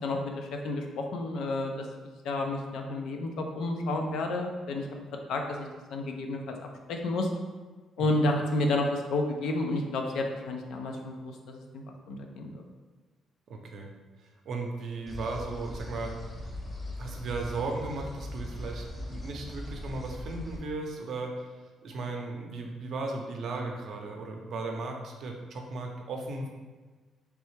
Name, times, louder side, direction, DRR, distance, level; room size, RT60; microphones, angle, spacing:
voice 1, 0.0-1.8 2.2-4.8 5.3-7.3 8.0-12.6, left 2 dB, 80° left, 3 dB, 0.5 m, -31 dB
voice 2, 13.5-13.9 14.2-16.1 17.0-21.5 21.8-26.5, right 3 dB, 65° right, 2 dB, 0.6 m, -36 dB
sound 1, 15.1-20.6, left 1 dB, 25° left, 0.7 m, -40 dB
3.3 x 3.1 x 3.2 m, 1.3 s
cardioid pair, 90°, 0 cm